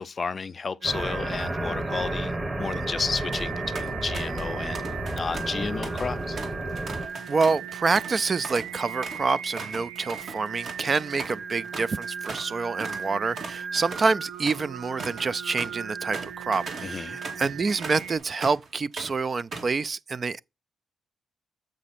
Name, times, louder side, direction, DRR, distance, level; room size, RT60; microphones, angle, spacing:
voice 1, 0.0-4.8 5.1-6.4 16.8-17.2, left 5 dB, 35° left, 0.5 m, -32 dB
sound 1, 0.8-7.1, right 1 dB, 15° right, 1.2 m, -32 dB
Singing, 0.8-18.2, right 6 dB, 90° right, 0.9 m, -38 dB
sound 2, 3.3-3.5 3.8-4.5 4.7-12.5 12.8-13.0 13.3-18.7 19.0-19.8, right 3 dB, 55° right, 2.2 m, -39 dB
voice 2, 7.3-20.4, right 4 dB, 40° right, 0.3 m, -27 dB
7.6 x 6.1 x 4.2 m
cardioid pair, 110°, 0 cm